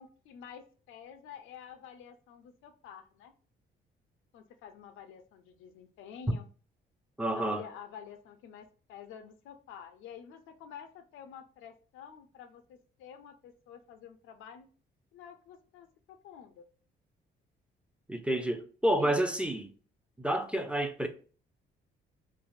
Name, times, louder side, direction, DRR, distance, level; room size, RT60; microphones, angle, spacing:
voice 1, 0.0-3.3 4.3-6.5 7.3-14.7 15.1-16.6 19.0-19.2, left 8 dB, 90° left, 0.5 m, -49 dB
voice 2, 7.2-7.6 18.1-19.7 20.2-21.1, right 1 dB, 5° right, 0.4 m, -29 dB
3.2 x 2.1 x 2.4 m
cardioid pair, 90°, 20 cm